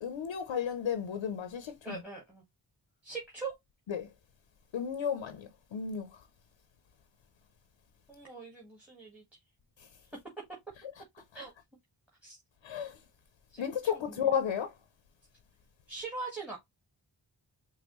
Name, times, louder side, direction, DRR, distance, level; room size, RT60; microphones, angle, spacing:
voice 1, 0.0-2.0 3.9-4.1 4.7-6.2 9.8-9.9 12.6-13.0 13.6-14.7, left 8 dB, 75° left, 0.7 m, -33 dB
voice 2, 1.8-2.4 3.0-3.5 8.1-9.2 11.3-11.5 12.2-12.4 13.5-13.6 13.9-14.3 15.9-16.6, right 4 dB, 5° right, 1.6 m, -41 dB
5.3 x 2.2 x 3.0 m
cardioid pair, 55°, 46 cm